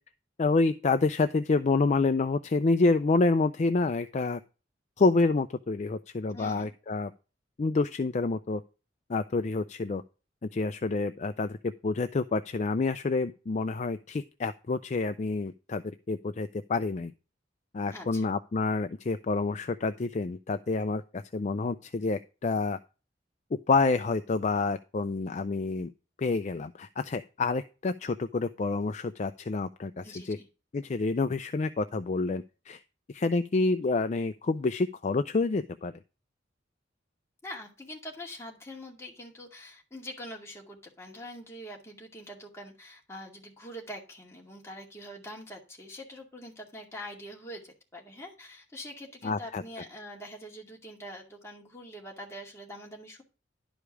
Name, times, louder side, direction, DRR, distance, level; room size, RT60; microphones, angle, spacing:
voice 1, 0.4-4.4 5.0-7.1 7.6-8.6 9.1-10.0 10.5-17.1 17.7-22.8 23.7-25.9 26.2-30.4 30.7-32.8 33.1-35.9 49.2-49.6, left 3 dB, 40° left, 10 dB, 0.4 m, -28 dB
voice 2, 6.3-6.7 17.9-18.2 30.0-30.5 37.4-53.2, equal, 15° left, -1 dB, 2.2 m, -44 dB
11.5 x 5.1 x 4.7 m, 0.33 s
head